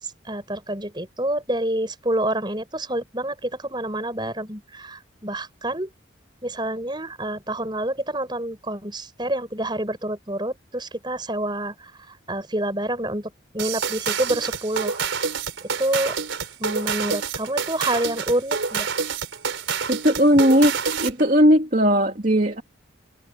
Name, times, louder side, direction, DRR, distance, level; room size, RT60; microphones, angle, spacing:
voice 1, 0.0-5.9 6.4-15.0 15.6-16.2 16.6-18.9, right 1 dB, 25° right, 6.2 m, -28 dB
sound 1, 13.6-21.2, right 5 dB, 85° right, 4.2 m, -27 dB
voice 2, 19.9-20.7 21.0-22.6, equal, 45° right, 2.6 m, -17 dB
head